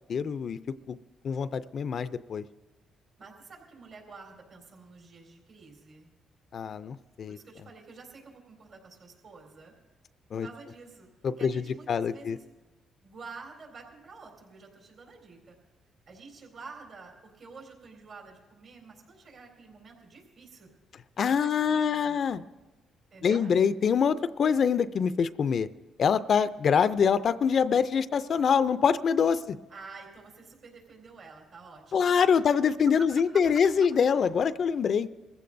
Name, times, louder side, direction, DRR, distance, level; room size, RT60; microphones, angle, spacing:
voice 1, 0.1-0.6 0.9-1.0 1.2-2.4 6.5-7.4 10.3-10.5 11.2-11.5 11.9-12.4 21.2-22.4 23.2-25.7 26.0-29.6 31.9-35.1, left 6 dB, 55° left, 14 dB, 0.4 m, -25 dB
voice 2, 3.2-6.1 7.3-9.7 10.4-11.1 11.4-12.4 13.0-15.6 16.1-20.7 21.4-22.3 23.1-23.5 29.7-32.2 32.5-32.6 33.0-33.1 33.3-33.4, right 4 dB, 65° right, 0 dB, 3.9 m, -49 dB
22.0 x 15.0 x 2.6 m, 1.1 s
cardioid pair, 90°, 0 cm